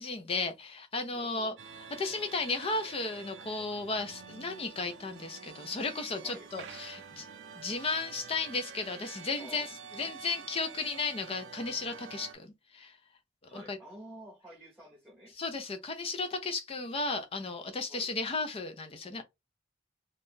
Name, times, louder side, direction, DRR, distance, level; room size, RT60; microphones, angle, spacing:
voice 1, 0.0-1.5 2.0-7.3 7.6-9.7 10.0-13.0 13.5-13.8 15.4-19.2, left 3 dB, 30° left, 0.4 m, -34 dB
voice 2, 1.1-1.6 6.2-6.5 9.4-10.3 13.5-15.4 17.9-18.1, equal, 5° right, 0.9 m, -50 dB
sound 1, 1.6-12.3, right 6 dB, 65° right, 0.4 m, -48 dB
2.6 x 2.4 x 3.6 m
head